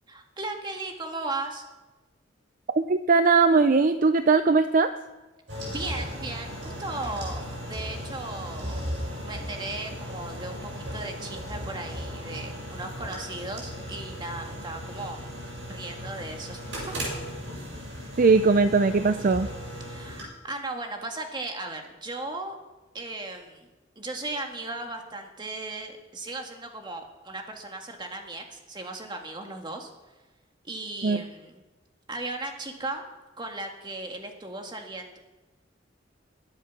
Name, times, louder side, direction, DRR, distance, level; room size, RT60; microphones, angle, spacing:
voice 1, 0.1-1.6 5.7-8.8 9.2-15.2 15.7-16.9 19.9-22.6 22.9-23.7 24.0-29.9 30.6-31.6 32.1-33.0 33.4-35.2, right 2 dB, 25° right, 3 dB, 1.7 m, -36 dB
voice 2, 2.7-4.9 18.2-19.5 31.0-31.2, right 4 dB, 45° right, 10 dB, 0.5 m, -20 dB
sound 1, 5.5-20.2, equal, 85° right, 6.6 m, -36 dB
21.0 x 7.8 x 5.9 m, 1.1 s
head